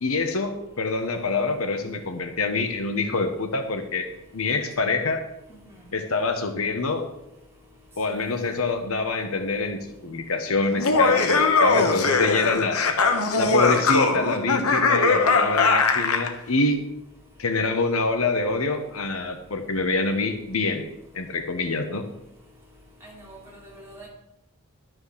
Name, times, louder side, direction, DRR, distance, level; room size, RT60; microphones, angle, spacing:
voice 1, 0.0-4.1 4.3-5.2 5.9-7.1 8.0-12.8 13.4-16.8 17.4-20.8 21.1-22.0, left 3 dB, 75° left, 7 dB, 1.1 m, -26 dB
Laughter, 10.7-16.3, left 4 dB, 90° left, 1.2 m, -20 dB
voice 2, 23.0-24.1, right 1 dB, 10° right, -4 dB, 4.7 m, -45 dB
11.5 x 6.3 x 6.4 m, 0.87 s
head